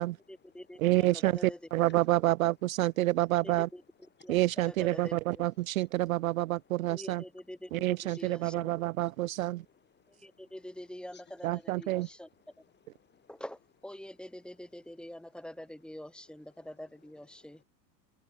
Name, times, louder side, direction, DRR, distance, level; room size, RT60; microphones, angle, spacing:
voice 1, 0.3-1.6 3.4-5.4 6.9-8.7 10.1-12.3 13.3-17.6, left 1 dB, ahead, 4.4 m, -46 dB
voice 2, 0.8-1.3 1.7-3.7 4.3-7.2 7.7-9.6 11.4-12.1, right 17 dB, 55° right, 0.6 m, -28 dB
voice 3, 6.6-7.0 8.1-8.2 9.2-10.5 11.1-11.2 12.0-12.2 12.6-12.7 13.0-13.3 17.3-17.6, left 7 dB, 20° left, 3.3 m, -63 dB
open air
figure-of-eight pair, 85°, 49 cm